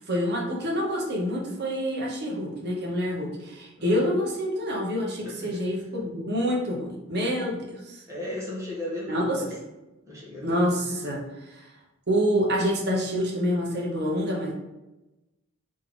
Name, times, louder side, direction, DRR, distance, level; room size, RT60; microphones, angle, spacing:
voice 1, 0.0-8.0 9.1-9.6 10.4-11.2 11.5-11.7 12.1-14.5, equal, 50° right, -2 dB, 1.1 m, -27 dB
voice 2, 5.2-5.6 8.1-9.6 10.1-11.0, left 1 dB, 15° right, -7 dB, 1.5 m, -36 dB
3.8 x 3.2 x 3.8 m, 1.0 s
head